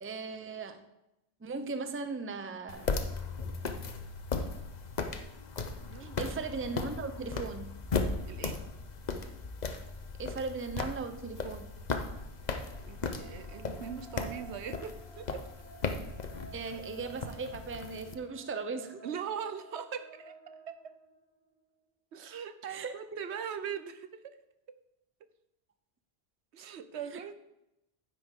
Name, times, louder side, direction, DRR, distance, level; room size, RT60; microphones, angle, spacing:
voice 1, 0.0-0.9 1.4-2.9 6.0-7.8 10.2-11.7 16.5-19.0 22.7-22.9 27.1-27.2, right 4 dB, 15° right, 9 dB, 0.5 m, -38 dB
sound 1, 2.7-18.1, left 4 dB, 45° left, 0.8 m, -37 dB
voice 2, 5.8-6.3 8.3-8.6 12.8-15.5 19.0-21.0 22.1-24.4 24.7-24.8 26.5-27.3, right 7 dB, 85° right, 11 dB, 1.1 m, -41 dB
sound 2, 12.4-21.5, right 4 dB, 75° left, 4.2 m, -53 dB
11.0 x 10.0 x 3.7 m, 0.90 s
omnidirectional pair, 1.1 m